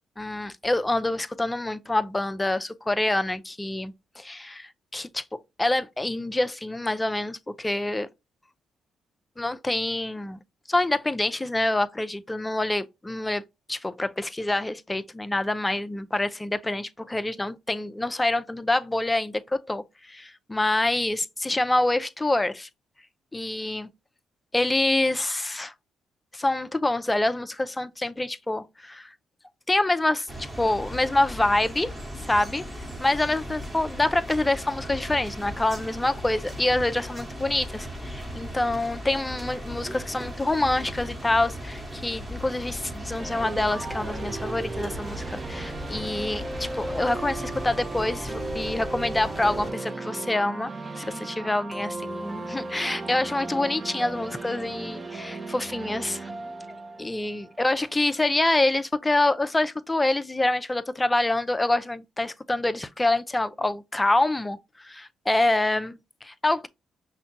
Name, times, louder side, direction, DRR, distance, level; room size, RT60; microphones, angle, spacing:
voice 1, 0.2-5.2 5.6-8.1 9.4-10.4 10.7-13.4 13.7-22.7 23.3-23.9 24.5-25.7 26.3-29.1 29.7-30.3 30.6-31.9 32.2-32.6 33.0-50.7 51.0-56.3 57.0-66.7, left 2 dB, 20° left, 0.4 m, -26 dB
sound 1, 30.3-49.7, equal, 15° right, 1.2 m, -37 dB
sound 2, 43.2-58.0, right 2 dB, 30° right, 0.6 m, -36 dB
5.7 x 2.2 x 2.7 m
supercardioid pair, 55°, 0 cm